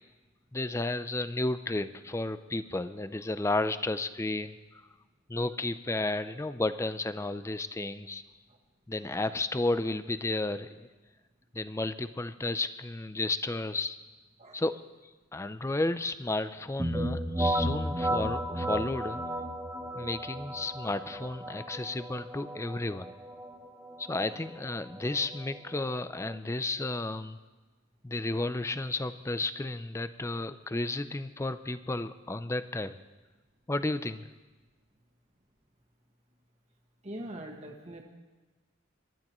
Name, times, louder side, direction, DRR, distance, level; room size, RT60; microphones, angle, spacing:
voice 1, 0.5-4.6 5.3-8.2 8.9-10.9 11.5-14.0 14.5-14.8 15.3-19.2 20.0-23.1 24.0-27.4 28.0-33.0 33.7-34.3, left 2 dB, 15° left, 12 dB, 0.4 m, -32 dB
sound 1, 16.8-26.4, right 1 dB, 10° right, 1.2 m, -34 dB
voice 2, 37.0-38.0, right 1 dB, 35° right, 0 dB, 1.8 m, -42 dB
26.5 x 12.0 x 3.1 m, 1.3 s
head